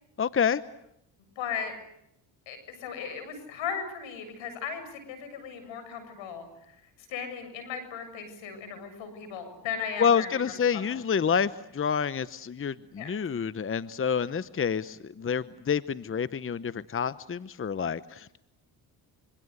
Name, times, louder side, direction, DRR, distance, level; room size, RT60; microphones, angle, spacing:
voice 1, 0.2-0.6 10.0-18.4, left 7 dB, 30° left, 15 dB, 0.9 m, -28 dB
voice 2, 1.4-1.7 2.5-6.5 7.1-10.3 10.7-10.8 13.0-13.1, left 7 dB, 80° left, 9 dB, 7.5 m, -36 dB
26.5 x 24.5 x 8.1 m, 0.78 s
supercardioid pair, 70°, 45 cm